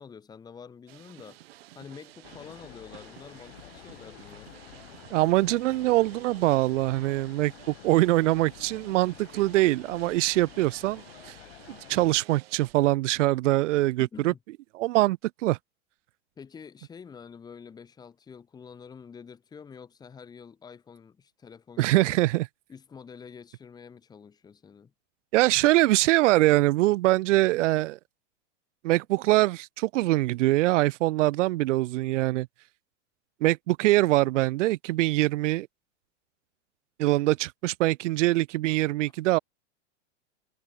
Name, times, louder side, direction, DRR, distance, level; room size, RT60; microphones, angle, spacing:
voice 1, 0.0-1.4 1.7-4.5 13.8-14.4 16.4-22.2 22.7-24.9, left 6 dB, 10° left, 5.5 m, -47 dB
sound 1, 0.9-12.7, right 16 dB, 55° right, 7.8 m, -52 dB
sound 2, 2.2-12.2, left 15 dB, 65° left, 4.7 m, -50 dB
voice 2, 5.1-11.3 11.7-14.3 14.7-15.6 21.8-22.5 25.3-28.0 28.8-32.5 33.4-35.7 37.0-39.4, right 18 dB, 80° right, 0.6 m, -23 dB
supercardioid pair, 180°, 36 cm